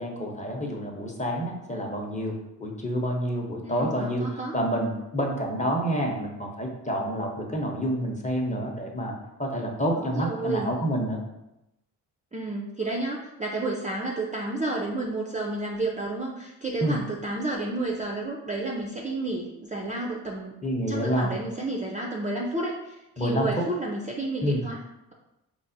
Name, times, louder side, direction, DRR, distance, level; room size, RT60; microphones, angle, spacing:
voice 1, 0.0-2.3 2.6-9.1 9.4-11.2 16.8-17.0 20.6-21.3 23.2-23.6 24.4-24.6, equal, 20° left, 1 dB, 0.8 m, -28 dB
voice 2, 3.6-4.5 10.0-10.7 12.3-20.6 20.9-24.8, right 2 dB, 20° right, -2 dB, 0.4 m, -31 dB
4.6 x 2.1 x 2.6 m, 0.90 s
supercardioid pair, 55°, 41 cm